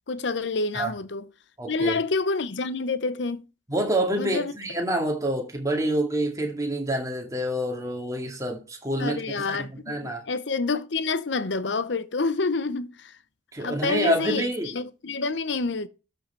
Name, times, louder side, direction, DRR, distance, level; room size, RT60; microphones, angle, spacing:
voice 1, 0.1-1.3 1.7-3.4 4.2-4.5 9.0-13.1 13.6-14.5 14.7-15.9, left 3 dB, 65° left, 0.7 m, -28 dB
voice 2, 1.6-2.0 3.7-10.2 13.5-14.7, right 1 dB, 15° right, 2.1 m, -27 dB
12.5 x 5.7 x 4.5 m
head